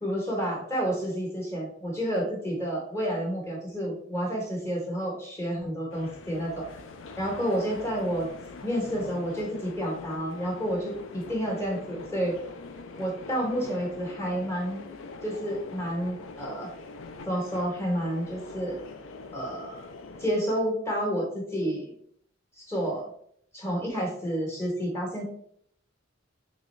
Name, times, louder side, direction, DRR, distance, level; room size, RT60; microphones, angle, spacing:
voice 1, 0.0-6.7 7.2-8.3 8.6-12.4 13.0-14.8 15.2-16.7 17.2-18.8 19.3-19.8 20.2-21.9 22.6-23.1 23.5-25.2, equal, 15° left, -2 dB, 1.2 m, -30 dB
sound 1, 5.9-20.3, left 3 dB, 75° left, 0.4 m, -43 dB
3.7 x 3.1 x 3.2 m, 0.66 s
head